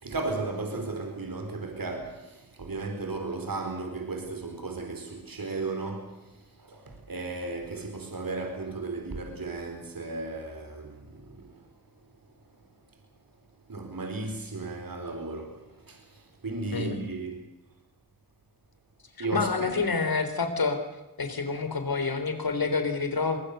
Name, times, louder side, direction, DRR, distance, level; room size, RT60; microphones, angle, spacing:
voice 1, 0.0-11.6 13.7-17.4 19.2-19.7, right 3 dB, 70° right, 4.6 m, -35 dB
voice 2, 19.2-20.8 21.2-23.4, left 4 dB, 80° left, 3.8 m, -28 dB
25.5 x 21.0 x 6.8 m
cardioid pair, 40°, 35 cm